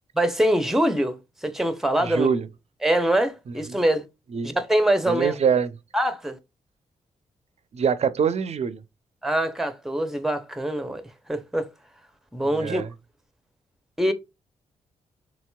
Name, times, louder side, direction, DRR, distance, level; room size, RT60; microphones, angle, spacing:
voice 1, 0.2-1.2 1.4-2.3 2.8-4.1 4.4-5.3 5.9-6.4 9.2-11.0 11.3-11.7 12.3-12.8 14.0-14.1, right 1 dB, ahead, 0.6 m, -23 dB
voice 2, 2.0-2.5 3.5-3.8 4.3-4.5 5.1-5.7 7.7-8.8 12.4-12.9, right 6 dB, 45° right, 0.5 m, -24 dB
2.9 x 2.9 x 2.2 m
hypercardioid pair, 40°, 15 cm